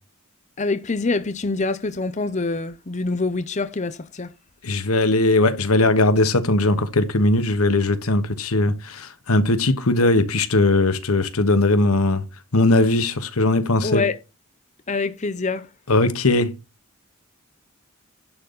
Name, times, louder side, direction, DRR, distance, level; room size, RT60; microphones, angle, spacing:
voice 1, 0.6-4.3 13.8-14.2 14.9-15.7, left 3 dB, 35° left, 0.7 m, -25 dB
voice 2, 4.6-12.2 12.5-14.0 15.9-16.5, left 2 dB, 85° left, 1.4 m, -19 dB
11.0 x 4.0 x 6.9 m
head